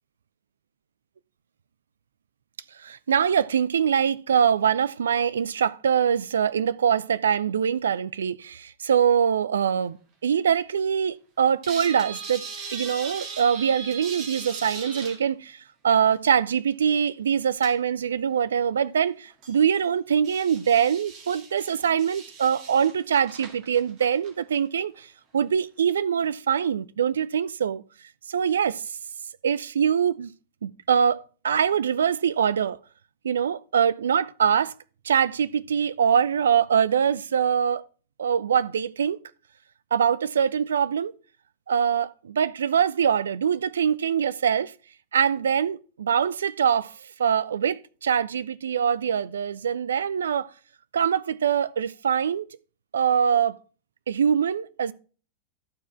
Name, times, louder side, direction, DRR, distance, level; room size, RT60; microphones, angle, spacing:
voice 1, 2.8-10.0 10.2-12.4 12.7-15.6 15.8-25.1 25.3-27.8 28.3-28.8 29.4-30.3 30.6-32.8 33.2-34.7 35.0-37.8 38.2-39.2 39.9-41.1 41.7-44.7 45.1-46.9 47.2-50.5 50.9-52.5 52.9-53.6 54.1-54.9, right 8 dB, 65° right, 0.4 m, -23 dB
sound 1, 11.6-15.2 16.8-16.9 17.6-17.7 18.1-18.2 19.3-19.6 20.2-24.6 24.9-25.0, right 5 dB, 40° right, 2.0 m, -39 dB
12.0 x 4.7 x 4.3 m
figure-of-eight pair, 90°, 0 cm